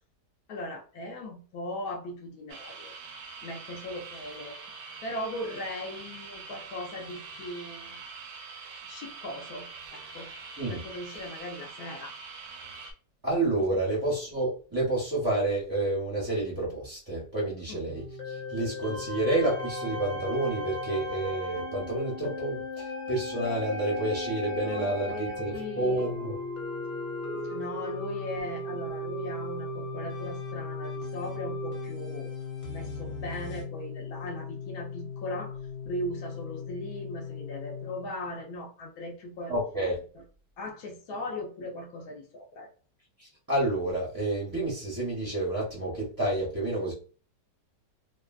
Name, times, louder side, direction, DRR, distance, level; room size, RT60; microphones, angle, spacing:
voice 1, 0.5-3.0 3.4-8.0 8.8-10.3 10.7-12.1 13.7-13.8 17.7-17.8 24.4-26.1 27.3-32.3 32.7-35.6 35.8-39.5 40.2-40.3 40.6-42.7, left 1 dB, 70° left, 1 dB, 1.0 m, -39 dB
sound 1, 2.5-12.9, right 5 dB, 80° right, 1.2 m, -44 dB
voice 2, 13.2-26.4 39.5-40.1 43.2-46.9, right 1 dB, 25° right, -5 dB, 0.5 m, -29 dB
sound 2, 17.9-33.6, left 1 dB, 50° left, 1.3 m, -37 dB
Organ, 27.7-38.6, left 7 dB, 90° left, 1.3 m, -40 dB
3.0 x 2.3 x 2.3 m, 0.39 s
omnidirectional pair, 1.9 m